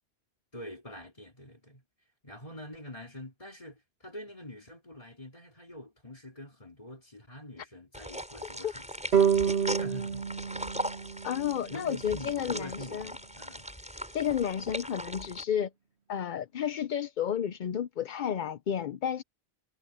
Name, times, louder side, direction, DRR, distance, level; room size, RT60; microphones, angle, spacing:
voice 1, 0.5-1.8 2.2-9.1 9.6-10.3 11.7-13.7, left 1 dB, 30° left, 3.3 m, -45 dB
sound 1, 7.9-15.4, equal, 5° right, 5.6 m, -39 dB
sound 2, 9.1-12.4, right 7 dB, 75° right, 1.7 m, -29 dB
voice 2, 11.2-13.1 14.1-15.7 16.1-19.2, left 9 dB, 55° left, 0.7 m, -31 dB
omnidirectional pair, 1.1 m